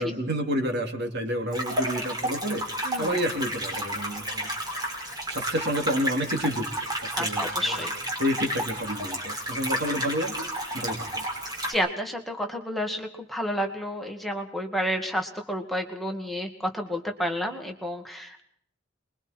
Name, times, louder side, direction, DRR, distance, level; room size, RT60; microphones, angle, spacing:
voice 1, 0.0-2.6 3.0-4.5 5.3-6.7 7.0-7.8 8.1-11.2, equal, 55° right, 4 dB, 3.2 m, -29 dB
sound 1, 1.5-11.7, right 1 dB, 20° right, 5.2 m, -31 dB
voice 2, 2.8-3.2 7.2-7.9 11.7-18.4, equal, ahead, 2 dB, 2.1 m, -30 dB
27.0 x 22.5 x 4.5 m, 0.65 s
head